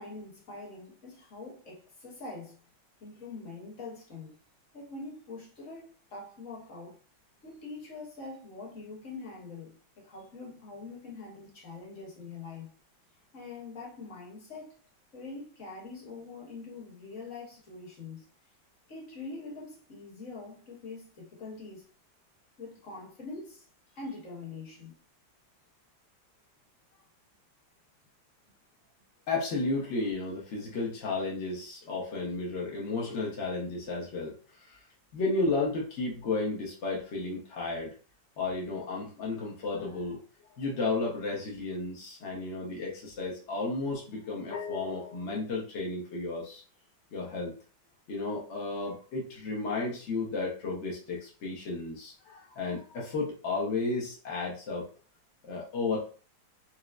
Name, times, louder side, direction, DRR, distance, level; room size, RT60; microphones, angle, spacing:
voice 1, 0.0-2.6 3.0-4.4 4.7-7.0 7.4-12.7 13.3-14.7 15.1-18.2 18.9-21.8 22.6-23.6 23.9-24.9, left 3 dB, 45° left, 1.2 m, -44 dB
voice 2, 29.3-34.8 35.1-37.9 38.4-40.2 40.6-46.6 47.1-47.5 48.1-54.9 55.4-56.1, left 3 dB, 70° left, 0.6 m, -33 dB
4.4 x 2.0 x 2.3 m
omnidirectional pair, 2.2 m